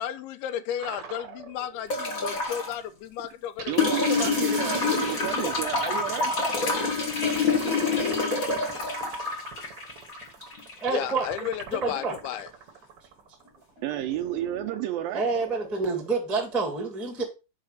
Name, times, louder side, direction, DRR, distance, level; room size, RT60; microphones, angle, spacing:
voice 1, 0.0-4.6 4.8-4.9 10.9-12.5, left 10 dB, 80° left, 2.6 m, -34 dB
sound 1, 0.8-3.0 3.6-16.7, right 6 dB, 60° right, 1.5 m, -41 dB
sound 2, 1.9-2.7 3.8-10.8 12.1-12.2, left 4 dB, 50° left, 0.9 m, -27 dB
voice 2, 3.7-6.3 13.8-15.2, right 13 dB, 80° right, 2.2 m, -31 dB
voice 3, 10.8-11.3 11.7-12.1 15.1-17.2, right 4 dB, ahead, 0.7 m, -28 dB
6.5 x 4.8 x 6.5 m
omnidirectional pair, 4.6 m